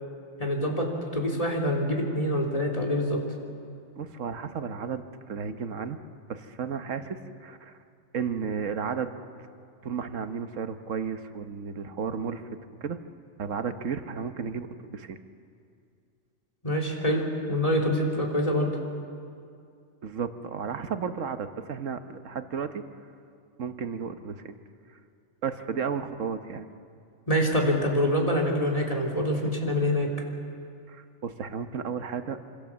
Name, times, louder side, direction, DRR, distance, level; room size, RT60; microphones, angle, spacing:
voice 1, 0.4-3.2 16.6-18.7 27.3-30.1, equal, 30° left, 1 dB, 3.5 m, -25 dB
voice 2, 4.0-6.0 6.3-7.7 8.1-9.2 9.8-12.4 12.8-13.0 13.4-14.7 14.9-15.2 20.0-22.8 23.6-24.5 25.4-26.7 30.9-32.4, right 6 dB, 80° right, 8 dB, 1.5 m, -33 dB
26.0 x 25.5 x 7.3 m, 2.4 s
omnidirectional pair, 1.3 m